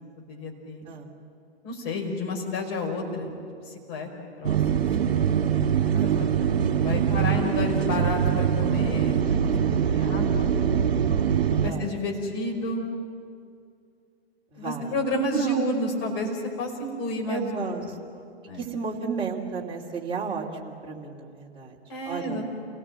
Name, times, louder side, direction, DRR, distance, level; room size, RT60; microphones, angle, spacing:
voice 1, 0.3-0.8 1.6-4.1 4.4-5.2 5.9-6.1 6.4-10.5 11.6-12.8 14.5-17.8 18.4-18.6 21.9-22.5, left 1 dB, 35° left, 1 dB, 5.3 m, -31 dB
sound 1, 4.4-11.7, right 8 dB, 60° right, 2.0 m, -23 dB
voice 2, 5.9-6.3 11.6-11.9 14.5-14.9 15.3-15.7 17.3-17.8 18.1-18.2 18.6-21.7 22.0-22.4, right 5 dB, 15° right, -2 dB, 3.0 m, -33 dB
29.0 x 18.0 x 7.7 m, 2.3 s
figure-of-eight pair, 115°, 32 cm